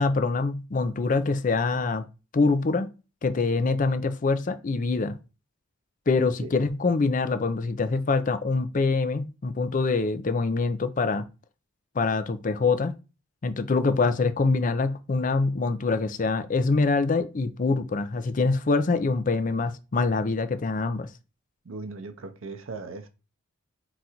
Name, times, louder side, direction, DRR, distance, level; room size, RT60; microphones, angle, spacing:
voice 1, 0.0-2.0 2.3-2.9 3.2-5.2 6.1-11.2 12.0-12.9 13.4-21.1, left 3 dB, 40° left, 0.4 m, -25 dB
voice 2, 21.6-23.1, right 3 dB, 75° right, 0.6 m, -38 dB
3.9 x 2.5 x 4.3 m
head